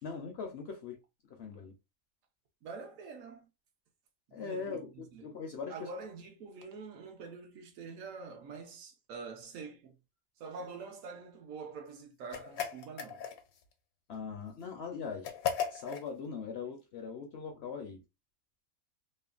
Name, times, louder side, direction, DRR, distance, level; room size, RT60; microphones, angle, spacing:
voice 1, 0.0-1.0 1.3-1.7 4.3-5.9 14.1-15.3 15.7-18.0, left 5 dB, 65° left, 0.7 m, -41 dB
voice 2, 2.6-3.5 4.3-5.3 5.7-9.9 10.4-13.3, right 4 dB, 75° right, 1.0 m, -46 dB
sound 1, 12.3-13.6 15.2-16.1, left 8 dB, 85° left, 1.0 m, -36 dB
3.1 x 2.1 x 2.3 m
omnidirectional pair, 1.4 m